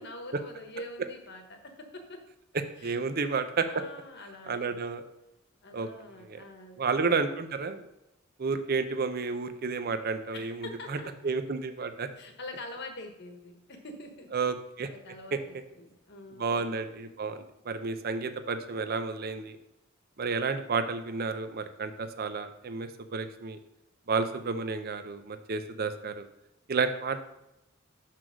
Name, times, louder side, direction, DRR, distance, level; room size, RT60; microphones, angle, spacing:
voice 1, 0.0-2.2 2.8-3.0 3.7-4.8 5.6-6.8 8.5-8.6 10.3-11.1 12.2-14.3 14.8-16.7, left 2 dB, 55° left, 5 dB, 1.2 m, -45 dB
voice 2, 2.8-3.8 4.5-5.0 5.7-5.9 6.3-6.4 6.8-7.9 8.4-12.1 14.3-14.9 15.3-15.4 16.4-19.6 20.2-23.6 24.1-26.3 26.7-27.2, right 4 dB, 50° right, 9 dB, 0.6 m, -31 dB
5.9 x 4.6 x 6.3 m, 0.89 s
head